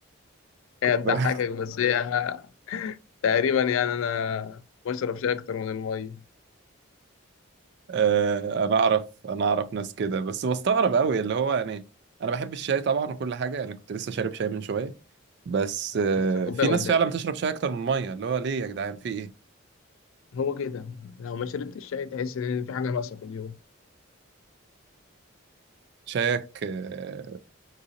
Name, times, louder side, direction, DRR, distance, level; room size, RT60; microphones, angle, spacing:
voice 1, 0.8-2.4 2.7-3.0 3.2-4.6 4.8-6.2 16.1-17.0 20.3-23.5, left 7 dB, 70° left, 0.3 m, -28 dB
voice 2, 7.9-11.8 12.2-14.9 15.5-19.3 26.1-27.4, right 6 dB, 50° right, 0.3 m, -26 dB
3.8 x 2.5 x 2.7 m
head